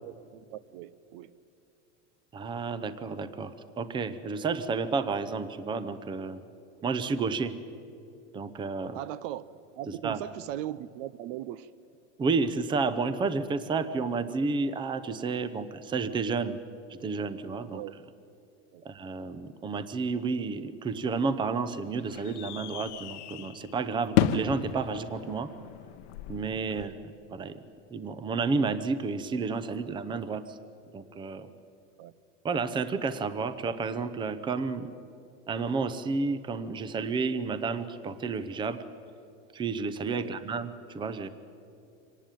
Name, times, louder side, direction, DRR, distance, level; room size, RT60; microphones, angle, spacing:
voice 1, 0.0-1.3 8.9-9.4 9.8-11.7 17.7-18.0 18.7-18.8 26.7-27.0 32.0-32.1 40.1-40.4, right 13 dB, 55° right, 17 dB, 0.7 m, -39 dB
voice 2, 2.3-6.4 6.8-7.5 8.3-9.0 9.9-10.2 12.2-16.6 17.0-17.8 18.8-25.5 26.3-26.9 27.3-27.6 27.9-30.6 30.9-31.5 32.4-34.9 35.5-38.8 39.5-41.3, right 4 dB, 15° right, 13 dB, 0.7 m, -31 dB
sound 1, 20.8-26.8, left 11 dB, 80° left, 1.1 m, -33 dB
25.0 x 19.0 x 9.1 m, 2.7 s
supercardioid pair, 160°, 34 cm